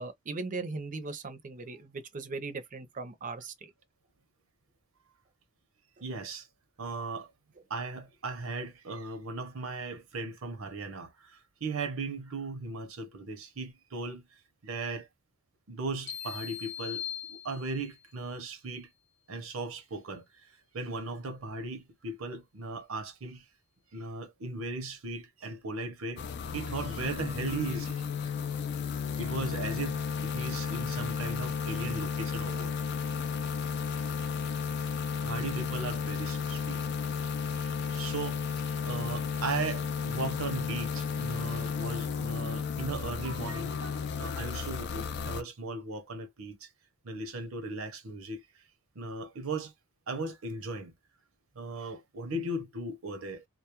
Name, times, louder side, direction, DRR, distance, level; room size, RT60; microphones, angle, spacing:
voice 1, 0.0-3.7, right 3 dB, 40° right, 0.5 m, -38 dB
voice 2, 6.0-6.5 6.8-7.3 7.7-14.2 14.6-15.1 15.7-17.0 17.3-18.9 19.3-23.5 23.9-26.2 26.5-28.1 29.1-32.7 35.2-36.9 37.5-46.7 47.0-48.4 49.0-49.7 50.1-50.9 51.6-53.5, right 3 dB, 75° right, 0.7 m, -37 dB
sound 1, 16.1-18.0, left 9 dB, 75° left, 0.8 m, -40 dB
sound 2, 26.2-45.4, left 6 dB, 55° left, 0.4 m, -33 dB
2.2 x 2.0 x 2.9 m
head